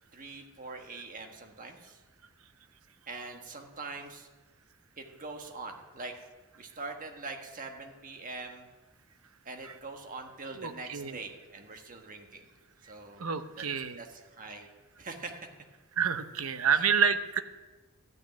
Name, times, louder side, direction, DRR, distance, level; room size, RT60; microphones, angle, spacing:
voice 1, 0.1-2.0 3.1-4.3 5.0-6.1 6.5-8.7 9.4-12.4 12.8-13.3 13.5-13.7 14.0-14.7 15.0-15.5 16.7-16.9, right 3 dB, 40° right, 4 dB, 1.4 m, -43 dB
voice 2, 10.6-11.2 13.2-14.0 16.0-17.4, right 6 dB, 70° right, 11 dB, 0.8 m, -28 dB
13.5 x 6.3 x 8.9 m, 1.3 s
head